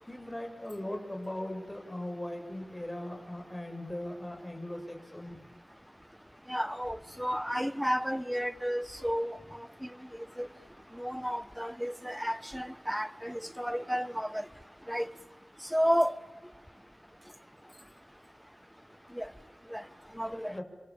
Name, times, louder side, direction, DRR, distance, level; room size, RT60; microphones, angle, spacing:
voice 1, 0.0-5.5 20.5-20.6, left 1 dB, 20° left, 6.8 m, -39 dB
voice 2, 6.5-9.3 10.4-10.5 11.0-14.4 14.9-15.1 15.7-16.1 19.2-19.3 19.7-19.8 20.2-20.5, equal, ahead, 1.3 m, -31 dB
29.0 x 24.5 x 7.2 m
wide cardioid pair, 70°, 0 cm